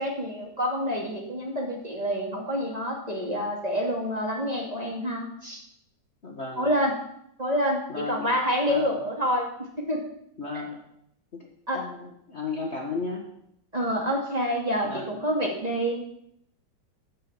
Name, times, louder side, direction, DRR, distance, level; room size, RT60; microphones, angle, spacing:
voice 1, 0.0-5.6 6.6-6.9 7.4-7.8 8.1-9.5 9.9-10.0 11.7-11.8 13.7-16.2, equal, 20° right, -1 dB, 2.3 m, -27 dB
voice 2, 6.2-6.7 7.9-8.3 8.7-9.0 10.4-10.8 11.3-11.5 11.7-13.3 14.8-15.2, left 4 dB, 35° left, 0 dB, 1.6 m, -34 dB
14.0 x 5.7 x 7.3 m, 0.74 s
omnidirectional pair, 2.1 m